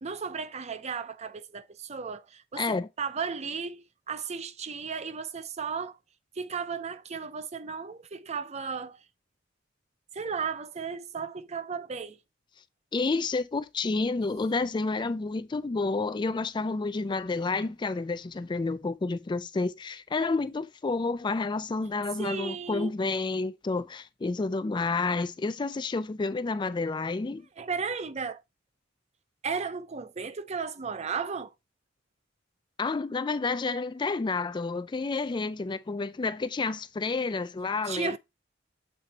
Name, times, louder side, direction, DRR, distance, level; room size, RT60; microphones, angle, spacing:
voice 1, 0.0-6.0 6.4-9.0 10.1-12.2 22.2-22.9 27.6-28.4 29.4-31.5 37.9-38.2, right 5 dB, 35° right, 0.6 m, -35 dB
voice 2, 2.6-2.9 12.9-27.5 32.8-38.2, left 3 dB, 25° left, 0.3 m, -30 dB
7.5 x 4.3 x 4.0 m
head